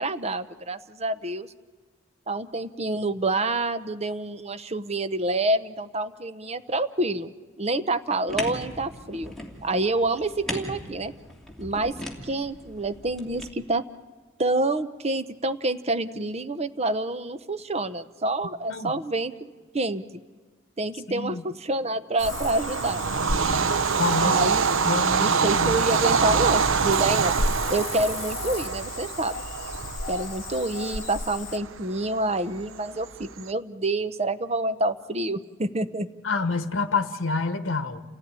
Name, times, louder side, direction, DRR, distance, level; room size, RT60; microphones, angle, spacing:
voice 1, 0.0-1.5 2.3-9.3 9.6-11.1 11.6-12.0 12.2-13.9 14.4-20.0 20.8-23.0 23.3-23.4 24.2-24.8 25.2-27.3 27.7-29.4 30.1-36.1, right 2 dB, 30° right, 11 dB, 0.8 m, -27 dB
sound 1, 8.3-13.5, left 1 dB, ahead, 2.5 m, -38 dB
voice 2, 21.1-21.4 24.0-24.5 24.9-25.7 36.2-38.0, left 4 dB, 65° left, 8 dB, 1.1 m, -27 dB
Cricket / Frog, 22.2-31.6, left 3 dB, 40° left, 1.2 m, -35 dB
Bird vocalization bird call bird song / Train, 22.2-33.4, right 5 dB, 70° right, 0.7 m, -25 dB
28.5 x 16.0 x 9.6 m, 1.3 s
head